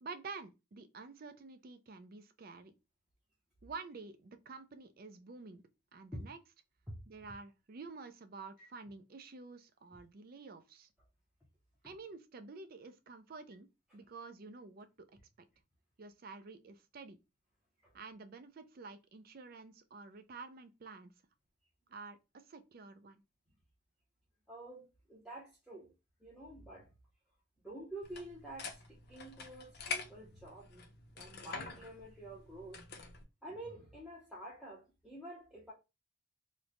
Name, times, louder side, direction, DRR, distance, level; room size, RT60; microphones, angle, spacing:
voice 1, 0.0-2.7 3.6-5.6 5.9-6.4 7.1-10.9 11.8-13.7 13.9-15.2 16.0-17.2 17.9-21.1 21.9-23.2, right 4 dB, 45° right, 0.4 m, -49 dB
voice 2, 24.5-25.9 26.2-26.9 27.6-30.9 31.2-32.8 33.4-35.7, right 1 dB, ahead, 0.7 m, -48 dB
sound 1, 28.0-33.2, left 4 dB, 50° left, 0.6 m, -46 dB
3.1 x 2.1 x 3.7 m
head